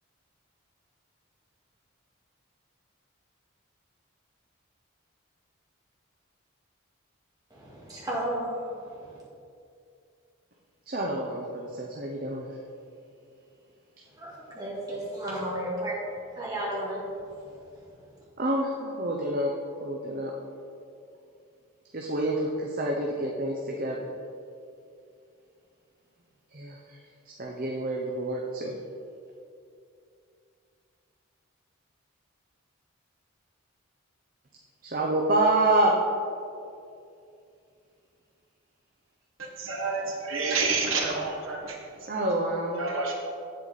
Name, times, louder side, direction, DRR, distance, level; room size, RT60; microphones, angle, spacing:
voice 1, 7.5-9.2 14.2-16.0 16.3-17.8, right 1 dB, 20° right, -6 dB, 2.0 m, -34 dB
voice 2, 10.9-12.5 18.4-19.5 19.8-20.3 21.9-24.1 26.5-27.0 27.4-28.8 34.8-35.9 42.1-42.8, right 1 dB, 40° right, -1 dB, 0.7 m, -27 dB
voice 3, 39.4-42.1 42.7-43.1, right 3 dB, 75° right, -1 dB, 1.3 m, -29 dB
8.2 x 7.5 x 4.1 m, 2.5 s
head